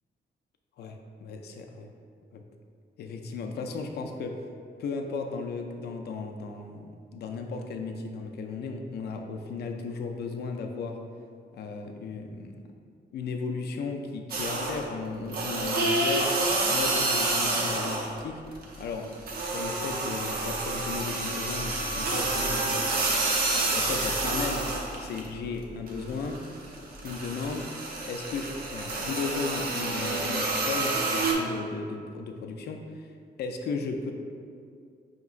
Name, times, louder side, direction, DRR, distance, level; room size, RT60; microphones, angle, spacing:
voice 1, 0.8-1.9 2.3-2.4 3.0-4.4 4.8-11.0 11.5-12.6 13.1-18.4 18.8-19.1 19.4-23.0 23.7-26.4 27.0-27.7 28.0-33.1 33.4-34.1, left 4 dB, 70° left, 4 dB, 0.4 m, -35 dB
sound 1, 14.3-14.9 15.3-18.2 18.5-25.3 25.6-31.3, right 2 dB, 60° right, 0.6 m, -28 dB
5.6 x 2.9 x 2.4 m, 2.2 s
cardioid pair, 130°, 18 cm